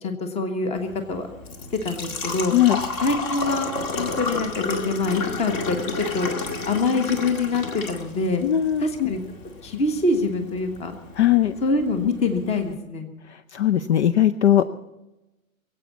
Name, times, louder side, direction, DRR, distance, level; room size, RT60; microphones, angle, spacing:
voice 1, 0.0-1.3 1.8-2.5 3.0-6.3 6.7-8.4 8.8-9.2 9.6-10.9 11.6-13.1, left 3 dB, 15° left, 6 dB, 1.3 m, -25 dB
Engine / Trickle dribble / Fill (with liquid), 0.8-12.7, left 3 dB, 35° left, 2.1 m, -32 dB
voice 2, 8.4-9.1 11.2-11.5 13.3-14.7, left 12 dB, 55° left, 12 dB, 0.7 m, -19 dB
22.5 x 8.5 x 7.2 m, 1.0 s
figure-of-eight pair, 115°, 41 cm